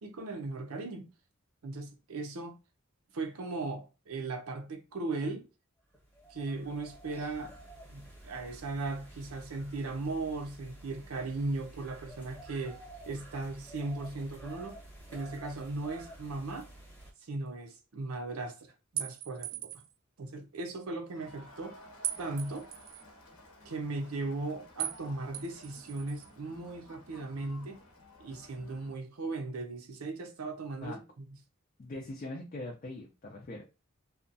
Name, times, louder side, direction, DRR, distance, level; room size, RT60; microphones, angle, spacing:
voice 1, 0.0-1.1 1.6-2.6 3.1-5.4 6.3-7.6 7.9-14.8 15.1-16.7 17.2-19.7 20.2-21.8 22.2-22.7 23.6-27.8 28.2-31.3, right 3 dB, 85° right, 0.6 m, -37 dB
sound 1, 5.9-17.1, right 1 dB, 10° left, 0.9 m, -51 dB
sound 2, 19.0-19.9 22.0-23.0 24.8-25.0 25.3-26.3, right 11 dB, 45° right, 0.4 m, -38 dB
Crowd, 21.1-29.0, left 1 dB, 80° left, 0.8 m, -55 dB
voice 2, 31.8-33.6, left 2 dB, 35° left, 0.4 m, -41 dB
2.7 x 2.2 x 2.6 m
head